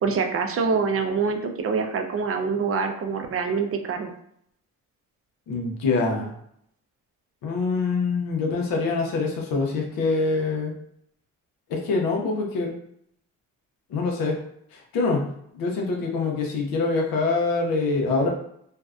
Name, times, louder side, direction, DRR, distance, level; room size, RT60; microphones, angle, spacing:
voice 1, 0.0-4.1, right 5 dB, 45° right, 5 dB, 0.4 m, -25 dB
voice 2, 5.5-6.3 7.4-10.7 11.7-12.7 13.9-14.4 14.7-15.3 15.5-18.3, left 3 dB, 85° left, 1 dB, 0.7 m, -25 dB
2.5 x 2.1 x 2.3 m, 0.70 s
supercardioid pair, 70°, 34 cm